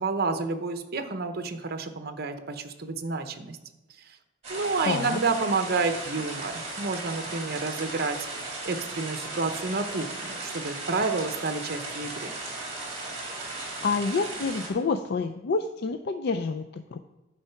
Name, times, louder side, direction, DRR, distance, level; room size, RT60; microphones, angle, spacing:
voice 1, 0.0-3.6 4.5-12.3, right 4 dB, 50° right, 8 dB, 0.8 m, -30 dB
sound 1, 4.4-14.7, right 2 dB, 30° right, 2.3 m, -36 dB
voice 2, 4.8-5.2 13.8-17.0, left 4 dB, 55° left, 7 dB, 0.4 m, -28 dB
11.0 x 4.7 x 5.7 m, 1.0 s
head